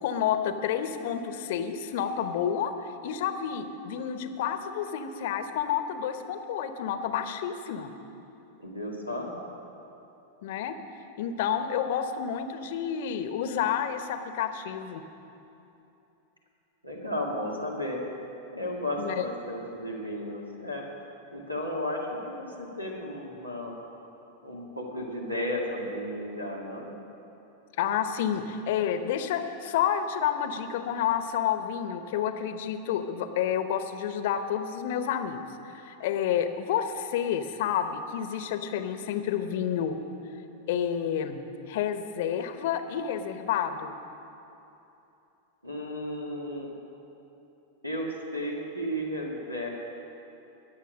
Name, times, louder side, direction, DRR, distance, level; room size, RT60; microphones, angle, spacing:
voice 1, 0.0-2.7 3.0-7.9 10.4-10.7 11.2-15.0 19.0-19.1 27.8-40.0 40.7-41.4 41.7-43.9, left 9 dB, 55° left, 9 dB, 0.9 m, -29 dB
voice 2, 8.6-9.4 16.8-18.0 18.5-20.8 21.3-23.8 24.4-26.9 45.6-46.7 47.8-49.7, left 1 dB, 85° right, -1 dB, 2.1 m, -34 dB
21.5 x 7.3 x 6.3 m, 2.9 s
figure-of-eight pair, 90°, 0 cm